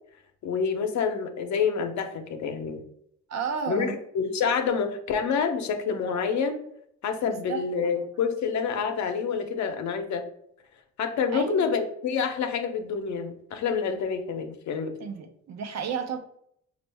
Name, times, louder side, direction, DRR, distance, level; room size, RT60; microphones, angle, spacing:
voice 1, 0.4-2.8 3.7-6.6 7.0-10.2 11.0-14.9, left 6 dB, 70° left, 6 dB, 0.7 m, -27 dB
voice 2, 3.3-4.0 7.2-8.0 11.3-11.7 15.0-16.2, right 6 dB, 60° right, 7 dB, 0.7 m, -33 dB
5.1 x 2.4 x 3.3 m, 0.72 s
cardioid pair, 90°, 30 cm